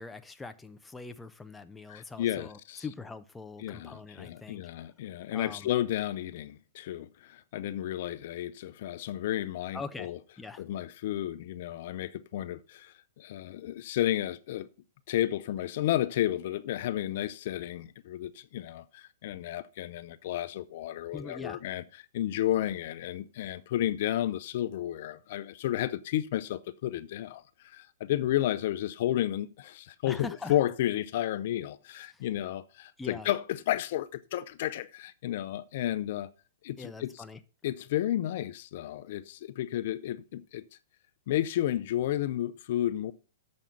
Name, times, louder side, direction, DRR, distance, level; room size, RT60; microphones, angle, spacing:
voice 1, 0.0-4.9 5.3-5.7 9.7-10.6 21.1-21.6 30.0-30.6 32.1-32.3 33.0-33.3 36.8-37.4, left 3 dB, 10° left, 0.5 m, -43 dB
voice 2, 1.9-2.8 3.6-10.2 10.6-14.7 15.1-21.8 22.1-36.3 36.6-37.1 37.6-40.6 41.3-43.1, left 13 dB, 55° left, 0.5 m, -32 dB
7.4 x 5.3 x 5.7 m
hypercardioid pair, 135°, 0 cm